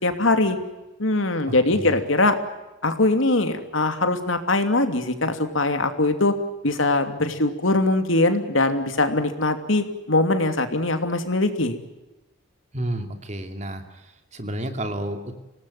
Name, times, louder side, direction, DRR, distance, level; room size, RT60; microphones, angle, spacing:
voice 1, 0.0-0.6 1.0-2.4 2.8-6.3 6.6-11.8, left 2 dB, 80° left, 7 dB, 2.8 m, -22 dB
voice 2, 1.4-2.0 12.7-15.4, right 1 dB, 35° right, 6 dB, 2.8 m, -31 dB
25.5 x 18.5 x 9.2 m, 1.0 s
head